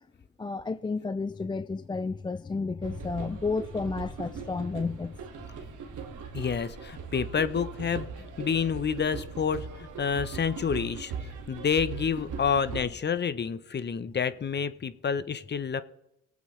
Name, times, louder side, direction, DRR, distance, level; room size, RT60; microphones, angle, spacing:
voice 1, 0.4-5.1, left 4 dB, 15° left, 0.4 m, -31 dB
sound 1, 2.8-12.9, right 6 dB, 80° right, 2.0 m, -40 dB
voice 2, 6.3-8.1 8.4-11.1 11.5-15.8, left 6 dB, 35° left, 0.8 m, -29 dB
20.5 x 8.4 x 3.3 m
cardioid pair, 90°, 30 cm